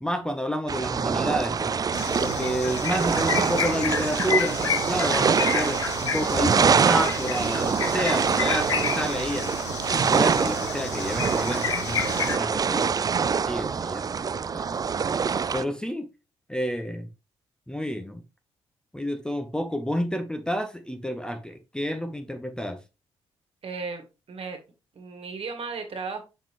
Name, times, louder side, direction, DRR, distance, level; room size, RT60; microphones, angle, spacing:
voice 1, 0.0-1.7 2.2-9.6 9.9-14.8 15.5-16.1 16.5-17.1 17.7-18.2 18.9-22.8, equal, 5° left, 1.0 m, -30 dB
sound 1, 0.7-15.6, right 6 dB, 25° right, 0.4 m, -25 dB
sound 2, 1.9-12.4, left 7 dB, 85° left, 0.6 m, -31 dB
voice 2, 23.6-24.6 25.0-26.2, right 4 dB, 40° right, 2.0 m, -35 dB
7.1 x 5.4 x 3.1 m
figure-of-eight pair, 40°, 14 cm